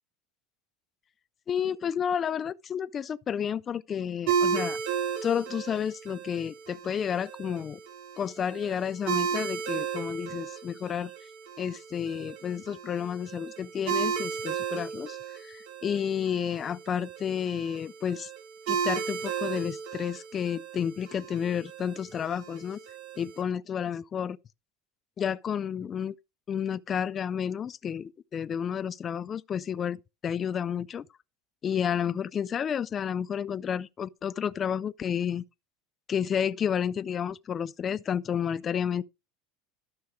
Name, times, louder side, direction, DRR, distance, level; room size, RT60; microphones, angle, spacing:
voice 1, 1.5-4.8 5.2-7.8 8.2-11.1 11.6-18.3 18.7-22.8 23.2-24.4 25.2-26.1 26.5-30.0 30.2-31.1 31.6-35.4 36.1-39.0, left 8 dB, 30° left, 0.4 m, -31 dB
sound 1, 4.3-23.4, right 7 dB, 65° right, 3.6 m, -34 dB
12.5 x 6.2 x 3.6 m
supercardioid pair, 125°, 0 cm